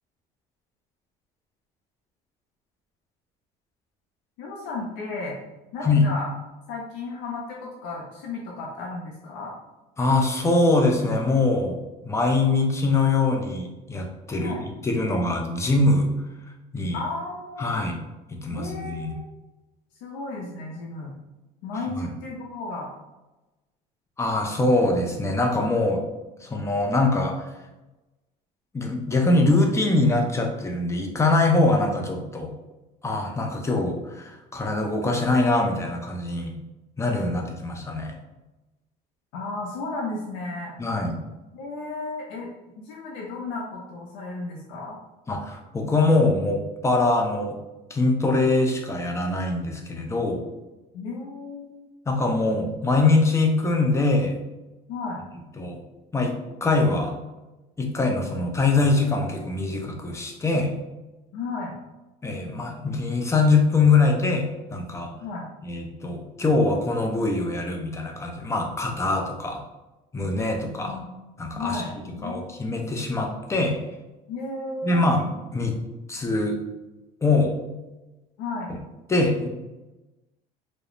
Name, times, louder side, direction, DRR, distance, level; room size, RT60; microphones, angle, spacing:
voice 1, 4.4-5.4 5.7-6.3 6.7-9.5 14.4-14.6 16.9-17.9 18.5-19.2 20.0-21.2 21.6-22.9 39.3-40.7 41.5-45.0 50.9-51.8 54.9-55.2 61.3-61.8 65.2-65.5 70.8-71.1 71.5-72.6 74.3-75.1 78.4-78.7, left 3 dB, 90° left, -2 dB, 0.5 m, -34 dB
voice 2, 10.0-11.8 12.0-16.1 16.7-17.0 17.6-18.0 18.3-19.1 22.0-22.1 24.2-26.0 26.4-27.5 28.7-32.5 33.0-36.5 37.0-38.1 40.8-41.1 45.3-47.6 47.9-50.4 52.1-54.3 55.6-55.8 56.1-57.2 57.8-60.7 62.2-65.1 65.7-69.6 70.1-71.0 71.4-71.8 72.2-73.8 74.8-75.8 76.1-76.6 77.2-77.5 79.1-79.5, left 2 dB, 15° left, 2 dB, 0.5 m, -23 dB
2.3 x 2.1 x 2.9 m, 1.0 s
cardioid pair, 100°, 17 cm